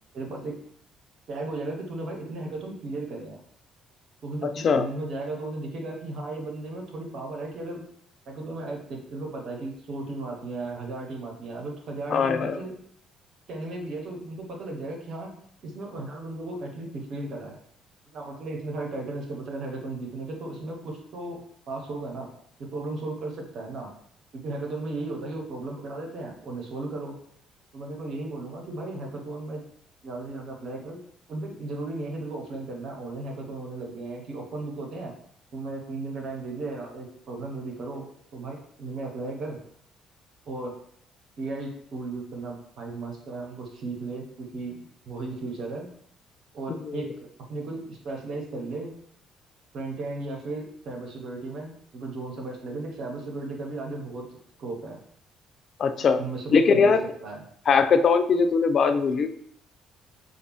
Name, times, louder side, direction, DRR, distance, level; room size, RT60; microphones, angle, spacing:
voice 1, 0.1-0.5 1.3-3.4 4.2-7.8 8.3-12.7 13.5-15.3 15.6-17.6 18.1-22.3 22.7-23.9 24.3-27.2 27.7-29.6 30.0-31.0 31.3-35.1 35.5-39.6 40.5-40.7 41.4-45.9 46.5-47.1 47.5-48.9 49.7-54.2 54.6-55.0 56.0-56.9 57.2-57.4, right 2 dB, 55° right, 0 dB, 1.0 m, -35 dB
voice 2, 12.1-12.6 46.7-47.0 55.8-56.2 56.5-57.0 57.7-59.3, left 5 dB, 50° left, 9 dB, 0.3 m, -21 dB
5.0 x 2.4 x 3.1 m, 0.64 s
figure-of-eight pair, 45°, 0 cm